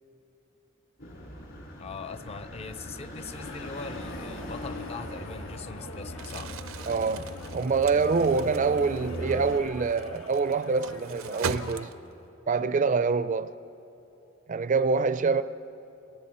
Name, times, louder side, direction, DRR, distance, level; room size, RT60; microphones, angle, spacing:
sound 1, 1.0-9.6, equal, 65° left, 4.6 m, -40 dB
voice 1, 1.8-6.5, left 4 dB, 30° left, 0.5 m, -41 dB
sound 2, 3.3-11.9, left 3 dB, 85° left, 1.2 m, -46 dB
Crumpling crinkling, 6.1-12.3, right 5 dB, 85° right, 0.6 m, -40 dB
voice 2, 6.9-11.9 12.5-13.5 14.5-15.4, right 4 dB, 40° right, 0.4 m, -25 dB
29.5 x 20.5 x 4.3 m
head